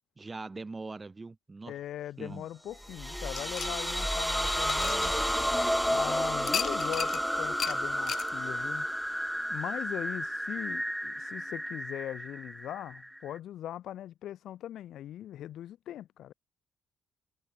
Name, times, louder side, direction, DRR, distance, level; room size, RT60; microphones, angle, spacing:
voice 1, 0.2-1.7 2.2-2.4, right 3 dB, 25° right, 1.9 m, -41 dB
voice 2, 1.7-5.2 5.9-8.9 9.5-16.3, left 12 dB, 75° left, 0.7 m, -40 dB
sound 1, 2.8-13.4, equal, ahead, 1.1 m, -31 dB
sound 2, 3.3-5.7 6.5-7.2 7.6-7.8 8.1-8.3, left 8 dB, 60° left, 0.3 m, -36 dB
cardioid pair, 90°, 0 cm